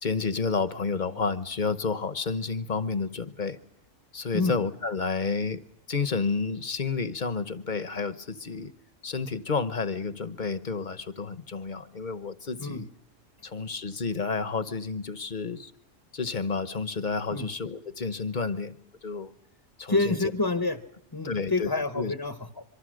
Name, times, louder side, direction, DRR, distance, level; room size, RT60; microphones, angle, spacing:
voice 1, 0.0-3.6 4.1-5.6 5.9-8.7 9.0-12.9 13.4-15.7 16.1-18.8 19.0-19.3 19.8-20.2 21.2-21.7 21.9-22.1, left 4 dB, 40° left, 14 dB, 1.1 m, -30 dB
voice 2, 19.9-20.8 21.1-22.6, left 3 dB, 20° left, 10 dB, 1.0 m, -28 dB
25.5 x 24.0 x 6.5 m, 0.70 s
omnidirectional pair, 1.3 m